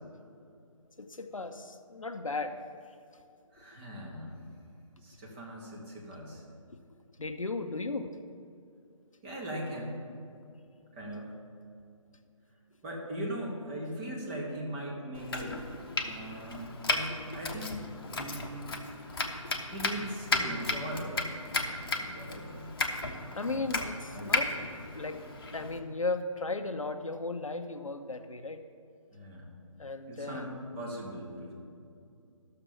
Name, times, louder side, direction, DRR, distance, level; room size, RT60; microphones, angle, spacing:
voice 1, 1.0-2.6 7.2-8.1 23.3-24.5 25.0-25.2 25.5-28.6 29.8-30.6, left 3 dB, 70° left, 8 dB, 0.7 m, -35 dB
voice 2, 3.5-4.3 5.0-6.4 9.2-10.0 10.9-11.3 12.8-15.6 16.0-17.8 18.1-18.7 19.7-21.3 21.6-22.7 23.3-23.7 24.1-24.6 29.1-29.6 30.1-30.5 30.7-31.5, right 1 dB, 20° right, -3 dB, 1.7 m, -39 dB
Domestic sounds home sounds, 15.1-25.8, left 3 dB, 45° left, 1.0 m, -35 dB
12.5 x 6.7 x 5.6 m, 2.5 s
figure-of-eight pair, 145°, 17 cm